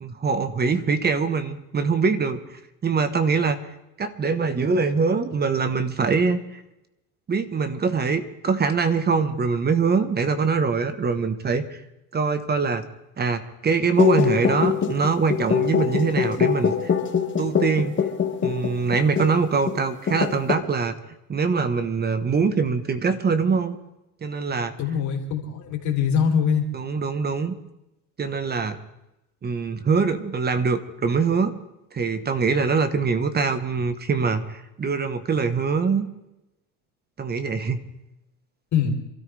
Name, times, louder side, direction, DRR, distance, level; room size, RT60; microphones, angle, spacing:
voice 1, 0.0-3.6 4.0-6.6 7.3-11.8 12.1-12.8 13.2-16.9 17.4-17.9 18.4-21.0 21.3-23.8 24.2-24.7 26.7-27.5 28.2-28.8 29.4-31.5 31.9-36.1 37.2-37.9, right 5 dB, 25° right, 11 dB, 1.2 m, -23 dB
sound 1, 14.0-19.4 19.7-19.8 20.1-20.5, left 7 dB, 30° left, 1.9 m, -23 dB
voice 2, 24.8-26.7 38.7-38.9, left 7 dB, 45° left, 1 dB, 3.4 m, -23 dB
27.0 x 13.0 x 3.4 m, 0.91 s
supercardioid pair, 115°, 41 cm